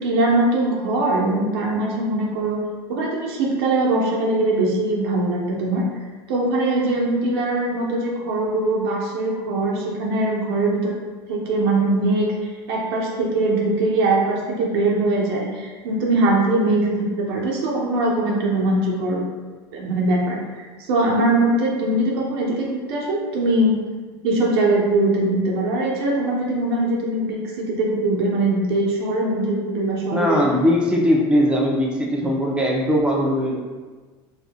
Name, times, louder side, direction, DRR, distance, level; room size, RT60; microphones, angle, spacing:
voice 1, 0.0-2.6 2.9-5.8 6.3-11.0 11.3-19.2 19.7-23.8 24.2-30.4, right 2 dB, 80° right, -3 dB, 0.9 m, -21 dB
voice 2, 30.1-33.6, equal, 10° right, -2 dB, 0.6 m, -20 dB
4.6 x 2.6 x 2.3 m, 1.4 s
supercardioid pair, 120°, 12 cm